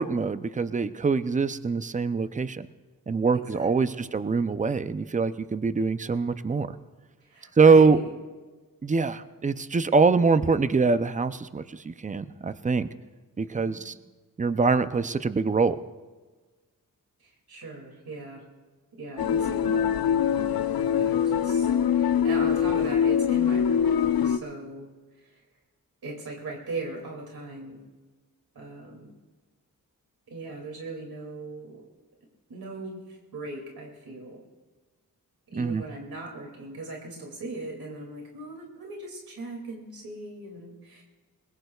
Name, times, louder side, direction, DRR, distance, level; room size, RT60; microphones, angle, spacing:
voice 1, 0.0-2.7 3.1-6.8 7.6-8.0 8.8-12.9 13.4-13.9 14.4-15.8 35.6-35.8, right 4 dB, 20° right, 12 dB, 0.5 m, -23 dB
voice 2, 3.3-4.1 7.2-8.1 13.4-13.8 17.2-18.4 19.0-20.4 20.9-24.0 24.2-24.9 25.2-25.4 26.0-27.8 28.5-29.1 30.3-31.8 32.5-34.4 35.5-41.0, right 2 dB, 85° right, -1 dB, 2.5 m, -39 dB
sound 1, 19.2-24.4, left 8 dB, 85° left, 0.8 m, -23 dB
27.5 x 21.5 x 2.3 m, 1.3 s
wide cardioid pair, 180°, 35 cm